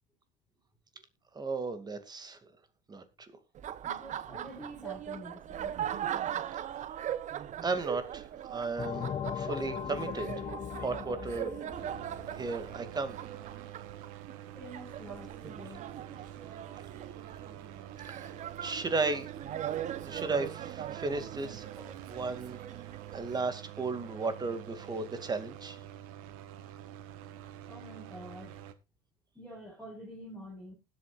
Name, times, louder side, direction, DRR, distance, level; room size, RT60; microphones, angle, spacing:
voice 1, 1.3-2.5 2.9-3.3 7.6-10.3 10.8-11.5 12.3-13.2 18.1-18.3 18.6-19.3 19.8-22.6 23.1-25.8, right 3 dB, 25° right, 2.3 m, -35 dB
Laughter, 3.5-23.4, right 10 dB, 45° right, 0.9 m, -40 dB
voice 2, 3.8-5.7 14.5-16.2 27.7-28.7 29.3-30.7, equal, 5° left, 4.8 m, -47 dB
sound 1, 8.8-13.2, left 8 dB, 30° left, 0.8 m, -39 dB
sound 2, 11.7-28.7, right 12 dB, 80° right, 1.2 m, -47 dB
20.0 x 8.7 x 2.5 m
supercardioid pair, 95°, 18 cm